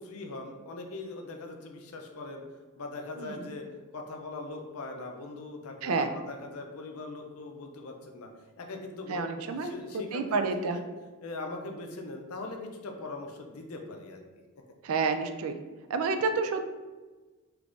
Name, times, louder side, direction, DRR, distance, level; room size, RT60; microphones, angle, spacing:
voice 1, 0.0-2.4 2.8-3.6 3.9-8.3 8.6-10.8 11.2-14.2, left 2 dB, 70° left, 3 dB, 0.5 m, -41 dB
voice 2, 9.1-9.7 10.1-10.8 14.9-15.5 15.9-16.7, right 4 dB, 65° right, 7 dB, 0.4 m, -28 dB
3.4 x 3.1 x 2.5 m, 1.3 s
head